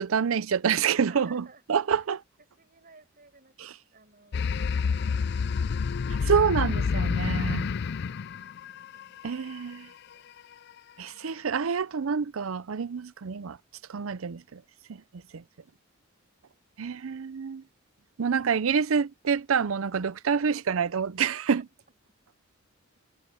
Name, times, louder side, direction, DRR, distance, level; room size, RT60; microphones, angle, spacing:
voice 1, 0.0-1.4 1.7-2.2 6.2-7.7 9.2-9.9 11.0-13.6 13.9-14.6 14.9-15.0 15.3-15.4 16.8-17.6 18.2-21.6, right 6 dB, 90° right, 0.6 m, -27 dB
voice 2, 0.9-2.0 2.4-5.4 8.9-9.3 9.7-10.3 11.1-11.5, right 4 dB, 45° right, 6.6 m, -57 dB
sound 1, 4.3-9.3, left 5 dB, 55° left, 0.4 m, -28 dB
head